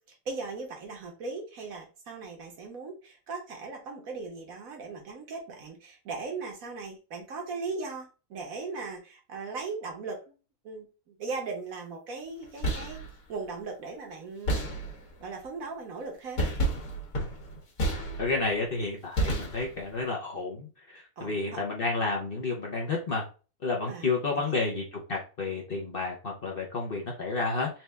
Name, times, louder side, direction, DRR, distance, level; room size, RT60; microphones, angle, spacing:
voice 1, 0.1-10.2 10.6-13.0 13.3-14.7 15.2-16.7 21.2-21.6 23.9-24.6, right 4 dB, 65° right, 2 dB, 1.4 m, -38 dB
sound 1, 12.4-13.1 14.5-15.2 16.4-18.5 19.2-19.9, right 1 dB, 70° left, 1.8 m, -30 dB
voice 2, 18.2-23.2 23.6-27.7, left 3 dB, 45° left, -1 dB, 0.9 m, -31 dB
4.3 x 2.5 x 3.4 m, 0.34 s
omnidirectional pair, 1.6 m